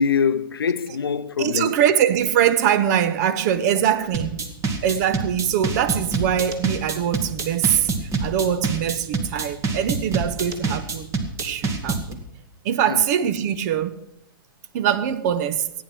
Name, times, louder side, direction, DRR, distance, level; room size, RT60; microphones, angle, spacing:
voice 1, 0.0-1.8 3.7-3.8 12.9-13.1, left 6 dB, 85° left, 0.6 m, -23 dB
voice 2, 1.4-4.4 4.8-11.1 11.4-12.2 12.6-14.0 14.7-15.7, right 9 dB, 50° right, 0.9 m, -22 dB
sound 1, 4.1-12.1, right 4 dB, 25° right, 1.7 m, -26 dB
15.0 x 9.5 x 6.0 m
hypercardioid pair, 115°, 12 cm